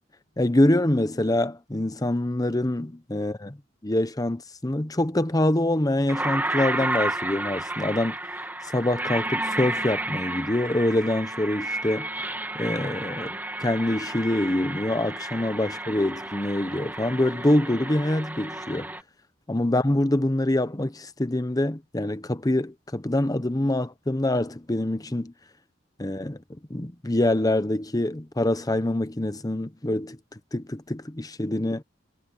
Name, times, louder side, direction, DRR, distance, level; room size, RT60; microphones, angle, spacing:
voice 1, 0.4-3.6 3.8-8.2 8.7-12.1 12.5-18.9 19.5-25.3 26.0-26.4 26.7-30.2 30.5-31.8, left 1 dB, 20° left, 0.9 m, -25 dB
sound 1, 6.1-19.0, right 2 dB, 10° right, 2.7 m, -32 dB
head